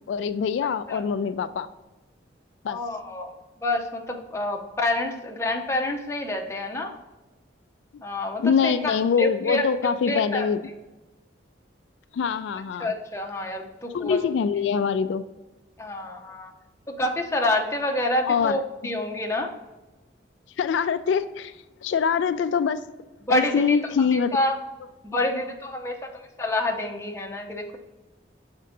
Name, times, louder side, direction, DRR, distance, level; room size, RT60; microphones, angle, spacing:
voice 1, 0.1-1.7 2.6-2.8 8.4-10.6 12.1-12.9 13.9-15.2 18.3-18.6 20.6-22.8 23.3-24.4, left 6 dB, 80° left, 12 dB, 0.3 m, -24 dB
voice 2, 2.7-3.3 3.6-6.9 8.0-9.7 10.0-10.5 12.8-14.2 15.8-16.5 16.9-19.5 23.3-23.8 24.1-24.5 25.0-27.8, left 1 dB, 15° left, 2 dB, 0.7 m, -28 dB
6.5 x 4.4 x 3.8 m, 1.1 s
head